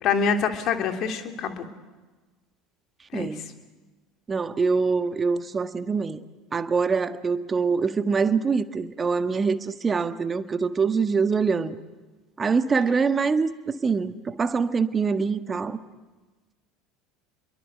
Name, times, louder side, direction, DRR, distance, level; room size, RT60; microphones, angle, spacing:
voice 1, 0.0-1.7 3.1-3.4, left 6 dB, 50° left, 3.1 m, -26 dB
voice 2, 3.1-3.4 4.3-6.2 6.5-11.7 12.4-15.8, right 5 dB, 25° right, 1.6 m, -24 dB
29.5 x 23.0 x 8.1 m
hypercardioid pair, 70°, 0 cm